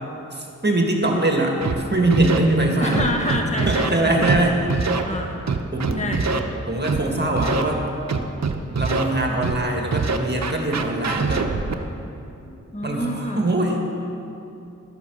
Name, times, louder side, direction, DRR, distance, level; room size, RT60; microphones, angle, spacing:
voice 1, 0.3-3.1 3.6-4.7 5.7-6.1 6.7-7.9 8.7-11.5 12.8-13.8, right 1 dB, 30° right, 1 dB, 1.9 m, -22 dB
Scratching (performance technique), 1.6-1.7 2.1-2.4 2.9-3.9 4.2-4.4 4.7-5.0 5.5-6.4 6.8-7.0 7.4-7.6 8.1-9.0 9.4-9.6 9.9-11.8, right 5 dB, 55° right, 0.9 m, -23 dB
voice 2, 2.8-4.2 5.0-5.4 6.0-6.3 12.5-13.4, left 1 dB, 20° left, 1 dB, 1.7 m, -27 dB
12.5 x 8.3 x 6.5 m, 2.8 s
cardioid pair, 40°, 32 cm